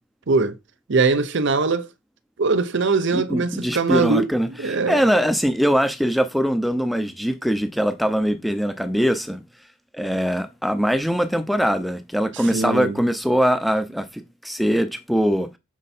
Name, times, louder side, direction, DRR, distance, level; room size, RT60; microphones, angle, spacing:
voice 1, 0.9-1.9 2.4-4.3 4.6-5.0 12.5-13.0, right 4 dB, 60° right, 0.7 m, -21 dB
voice 2, 3.1-9.4 9.9-15.5, equal, ahead, 0.6 m, -22 dB
6.3 x 4.5 x 4.2 m
head